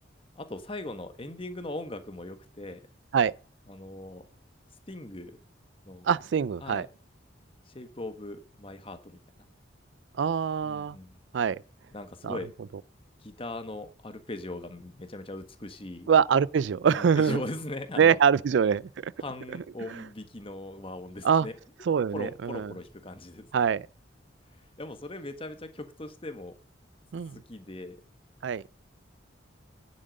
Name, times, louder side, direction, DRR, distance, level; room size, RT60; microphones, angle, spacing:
voice 1, 0.3-2.8 3.7-4.3 4.9-5.4 5.8-6.1 6.6-6.8 7.7-9.5 10.6-11.2 11.9-12.5 13.2-16.1 17.0-18.2 19.2-21.5 22.1-23.5 24.8-26.6 27.5-28.0, left 2 dB, 30° left, 1.4 m, -39 dB
voice 2, 6.0-6.9 10.2-11.0 11.3-11.6 12.2-12.4 16.1-17.4 18.0-19.1 21.2-21.5 21.9-22.7 23.5-23.9 27.1-27.4 28.4-28.6, right 7 dB, 70° right, 0.4 m, -24 dB
10.0 x 7.6 x 5.2 m
head